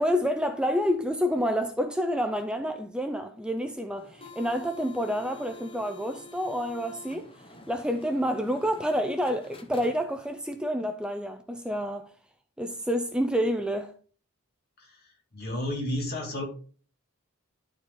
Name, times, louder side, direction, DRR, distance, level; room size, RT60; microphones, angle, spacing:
voice 1, 0.0-7.3 7.7-12.1 12.6-13.9, equal, 5° right, 0.4 m, -28 dB
sound 1, 4.0-10.4, left 2 dB, 25° left, 0.8 m, -49 dB
voice 2, 15.3-16.4, left 1 dB, 45° left, 2.4 m, -32 dB
12.0 x 4.3 x 3.7 m
head